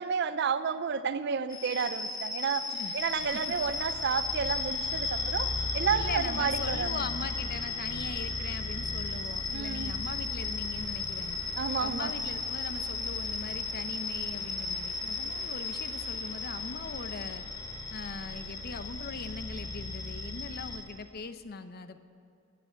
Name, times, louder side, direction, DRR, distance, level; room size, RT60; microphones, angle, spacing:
voice 1, 0.0-2.7 2.9-7.0 9.5-10.0 11.6-12.1, right 6 dB, 55° right, 14 dB, 0.5 m, -31 dB
sound 1, 1.5-20.8, left 3 dB, 20° left, 2.4 m, -35 dB
voice 2, 6.0-11.4 11.8-17.5 17.9-22.0, left 4 dB, 50° left, 11 dB, 0.7 m, -40 dB
18.0 x 6.9 x 8.7 m, 2.4 s
head